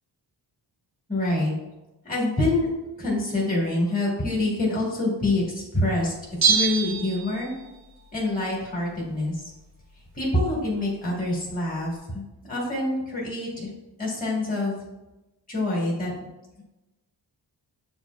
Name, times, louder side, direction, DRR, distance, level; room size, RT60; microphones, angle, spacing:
voice 1, 1.1-1.5 2.0-2.7 3.0-6.1 6.4-7.5 8.1-9.3 10.1-13.7 14.0-14.8 15.5-16.1, left 2 dB, 20° left, -4 dB, 1.1 m, -26 dB
Bell, 6.4-7.8 8.1-8.2, right 6 dB, 40° right, 0.5 m, -24 dB
7.5 x 2.5 x 2.2 m, 1.0 s
wide cardioid pair, 155°, 44 cm